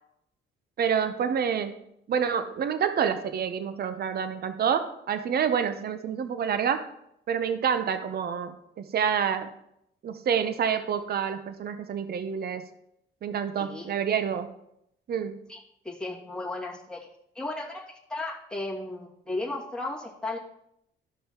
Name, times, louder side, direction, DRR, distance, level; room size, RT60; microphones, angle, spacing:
voice 1, 0.8-1.8 2.1-6.9 7.3-9.5 10.0-12.6 13.2-14.5 15.1-15.4, right 7 dB, 50° right, 10 dB, 0.8 m, -28 dB
voice 2, 13.6-13.9 15.5-15.6 15.8-17.0 17.4-20.4, left 2 dB, 5° left, -4 dB, 2.2 m, -35 dB
13.0 x 5.4 x 3.0 m, 0.77 s
cardioid pair, 90°, 20 cm